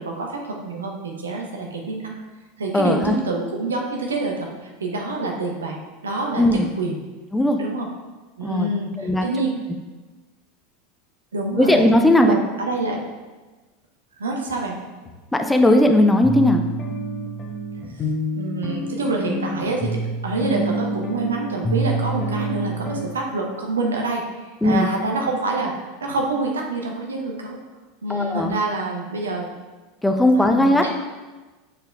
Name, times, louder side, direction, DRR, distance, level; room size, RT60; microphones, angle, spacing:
voice 1, 0.0-2.1 2.6-5.8 6.0-7.0 7.6-7.9 8.4-9.5 11.3-11.9 12.2-13.0 14.2-14.8 18.3-27.6 28.0-29.5 30.5-30.9, right 2 dB, 75° right, 0 dB, 1.0 m, -26 dB
voice 2, 2.7-3.1 6.4-6.7 7.3-7.6 8.4-8.7 9.0-9.3 11.6-12.4 15.3-16.6 24.6-24.9 28.1-28.5 30.0-30.9, left 1 dB, 5° left, 5 dB, 0.5 m, -17 dB
sound 1, 14.5-14.6 15.0-15.1 15.6-15.7 16.2-23.0, right 1 dB, 25° left, 1.1 m, -27 dB
6.9 x 4.4 x 3.4 m, 1.2 s
figure-of-eight pair, 80°, 0 cm